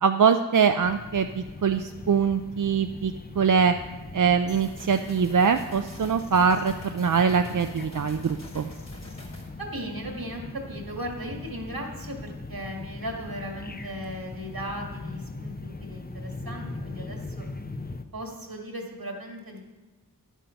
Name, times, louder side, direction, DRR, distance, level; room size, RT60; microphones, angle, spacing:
voice 1, 0.0-3.7 4.1-8.7, right 6 dB, 60° right, 7 dB, 0.5 m, -23 dB
sound 1, 0.8-18.0, left 2 dB, 25° left, 0.7 m, -40 dB
sound 2, 4.5-9.5, left 1 dB, 50° left, 2.9 m, -46 dB
voice 2, 9.5-17.5 18.1-19.6, equal, 80° right, 1 dB, 1.9 m, -37 dB
10.0 x 9.2 x 5.7 m, 1.2 s
wide cardioid pair, 50°, 35 cm